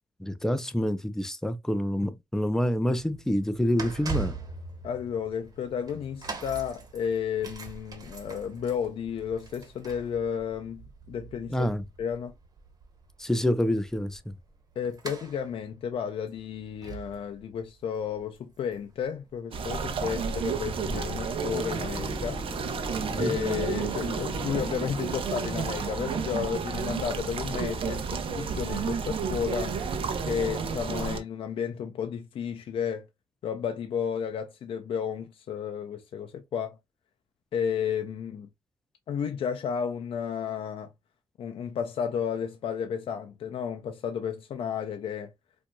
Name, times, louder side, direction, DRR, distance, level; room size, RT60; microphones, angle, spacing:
voice 1, 0.2-4.3 11.5-11.8 13.2-14.3 23.1-23.4, left 1 dB, 5° left, 0.5 m, -27 dB
sound 1, 2.7-19.7 20.3-20.4, right 4 dB, 40° right, 1.2 m, -42 dB
voice 2, 4.8-11.7 12.0-12.3 14.8-22.4 23.2-29.8 30.3-33.0 33.4-36.8 37.5-38.5 39.1-40.9 41.4-45.3, left 7 dB, 70° left, 0.4 m, -32 dB
sound 2, 19.5-31.2, right 5 dB, 70° right, 0.7 m, -31 dB
sound 3, 21.6-27.3, left 4 dB, 40° left, 0.8 m, -44 dB
4.3 x 2.6 x 2.2 m
cardioid pair, 105°, 10 cm